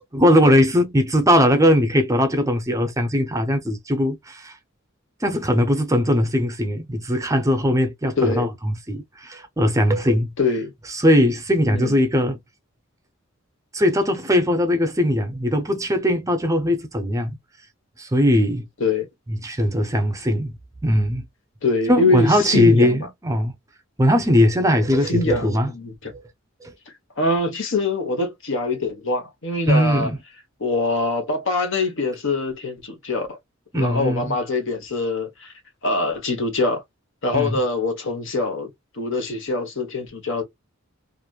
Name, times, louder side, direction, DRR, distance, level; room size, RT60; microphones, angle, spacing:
voice 1, 0.1-4.6 5.2-10.3 10.9-12.4 13.7-17.4 18.0-18.7 19.3-20.6 20.8-21.2 21.9-23.5 24.0-25.7 26.1-26.2 26.6-26.7 29.7-30.2 33.7-34.4 37.3-37.6, equal, 15° right, 0.5 m, -20 dB
voice 2, 8.2-8.5 10.4-10.7 11.7-12.0 18.8-19.1 21.6-23.1 25.1-26.1 27.2-30.1 30.6-33.3 33.7-35.5 35.8-36.8 37.2-40.4, left 3 dB, 65° left, 1.1 m, -24 dB
2.9 x 2.5 x 2.3 m
head